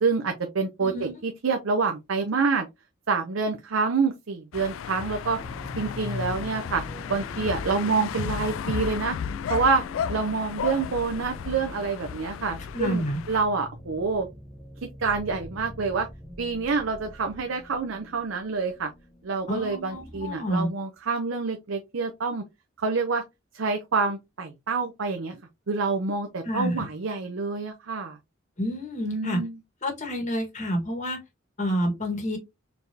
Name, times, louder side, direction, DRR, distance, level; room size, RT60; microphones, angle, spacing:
voice 1, 0.0-2.7 3.1-5.4 5.8-6.8 7.1-9.2 9.5-9.8 10.1-13.0 13.3-14.3 15.0-16.1 16.4-18.9 19.2-22.4 22.8-23.2 23.5-25.4 25.7-28.2 29.1-29.6, right 4 dB, 85° right, 0.7 m, -27 dB
voice 2, 0.8-1.1 12.7-13.2 19.5-20.7 26.4-26.8 28.6-29.4 29.8-31.2 31.6-32.4, equal, 40° left, 1.6 m, -29 dB
sound 1, 4.5-13.4, left 7 dB, 80° left, 0.3 m, -34 dB
sound 2, 5.4-20.4, left 1 dB, 5° left, 0.7 m, -44 dB
4.3 x 3.4 x 2.7 m
head